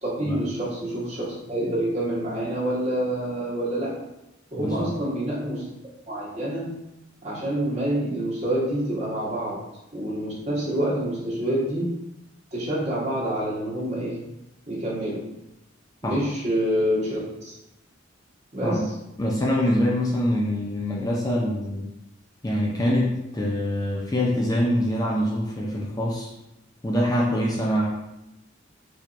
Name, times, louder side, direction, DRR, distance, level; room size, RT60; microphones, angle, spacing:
voice 1, 0.0-3.9 4.5-5.6 6.1-6.7 7.2-9.6 9.9-12.0 12.5-14.2 14.7-15.3 16.0-17.2 17.4-17.6 18.5-18.9, right 1 dB, 35° right, -8 dB, 1.5 m, -27 dB
voice 2, 4.6-4.9 16.0-16.2 18.6-18.8 19.2-21.9 22.4-26.3 26.8-27.9, equal, 20° left, -4 dB, 0.4 m, -24 dB
4.4 x 2.8 x 2.5 m, 0.90 s
head